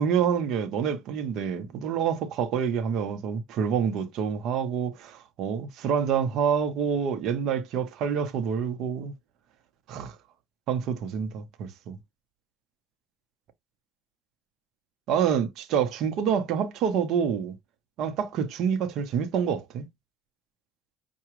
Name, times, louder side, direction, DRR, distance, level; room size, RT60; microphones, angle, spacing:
voice 1, 0.0-9.1 9.9-10.1 10.7-12.0 15.1-17.5 18.0-19.9, right 7 dB, 65° right, 0.9 m, -27 dB
5.8 x 2.3 x 3.1 m
supercardioid pair, 80°, 0 cm